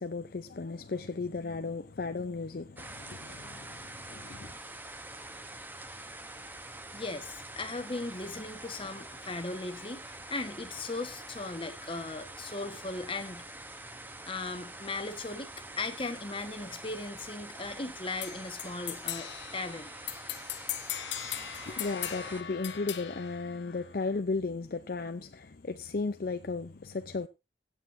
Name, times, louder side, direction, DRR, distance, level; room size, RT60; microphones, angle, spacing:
voice 1, 0.0-4.6 21.3-27.3, left 3 dB, 50° left, 0.5 m, -35 dB
sound 1, 2.8-22.4, right 2 dB, 10° right, 0.9 m, -45 dB
voice 2, 6.9-13.4 14.2-19.9, left 3 dB, 30° left, 1.3 m, -38 dB
sound 2, 18.2-24.2, left 11 dB, 70° left, 1.3 m, -39 dB
17.0 x 8.4 x 2.6 m
head